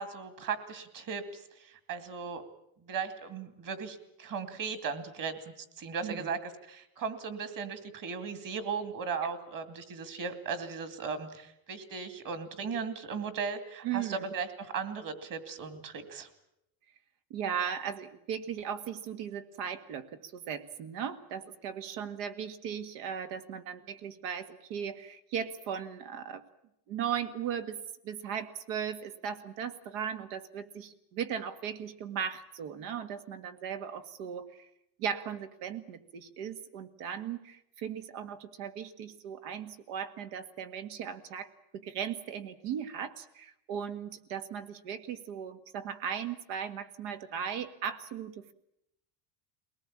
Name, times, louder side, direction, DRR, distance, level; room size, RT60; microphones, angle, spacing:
voice 1, 0.0-2.4 2.9-16.3, right 5 dB, 40° right, 11 dB, 2.6 m, -37 dB
voice 2, 6.0-6.3 13.8-14.3 17.3-26.4 26.9-27.8 28.0-34.7 35.0-48.5, right 8 dB, 85° right, 10 dB, 2.0 m, -37 dB
22.5 x 19.0 x 8.7 m, 0.80 s
cardioid pair, 145°, 48 cm